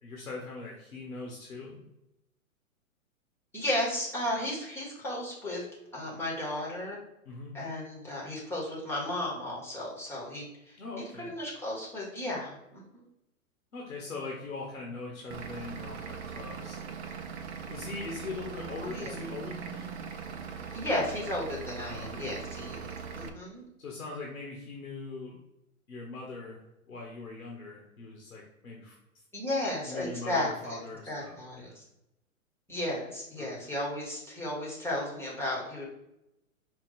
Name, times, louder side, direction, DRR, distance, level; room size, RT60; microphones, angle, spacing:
voice 1, 0.0-1.8 7.2-7.6 10.8-11.3 13.7-16.9 17.7-20.0 21.9-22.3 23.8-25.3 25.9-26.6 26.9-28.9 29.8-31.3 31.6-31.7 33.4-33.7, left 3 dB, 80° left, -2 dB, 1.2 m, -41 dB
voice 2, 3.5-5.6 5.9-7.0 7.5-10.8 11.3-13.0 18.8-19.2 20.7-22.9 23.1-23.6 29.3-30.8 31.1-31.8 32.7-35.8, left 1 dB, 5° left, -4 dB, 0.9 m, -34 dB
Vehicle / Engine, 15.3-23.3, right 6 dB, 50° right, 0.6 m, -40 dB
5.1 x 2.3 x 3.9 m, 0.89 s
figure-of-eight pair, 115°, 42 cm